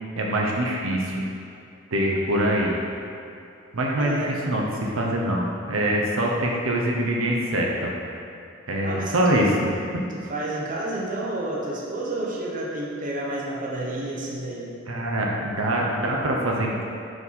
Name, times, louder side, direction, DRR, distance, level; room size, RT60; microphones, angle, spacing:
voice 1, 0.2-1.2 1.9-2.8 3.7-7.9 8.7-10.0 14.9-16.9, right 1 dB, 75° right, -2 dB, 0.8 m, -24 dB
voice 2, 4.0-4.5 8.8-9.4 10.3-14.7, right 1 dB, 40° right, -3 dB, 0.7 m, -30 dB
5.3 x 4.9 x 4.1 m, 2.6 s
head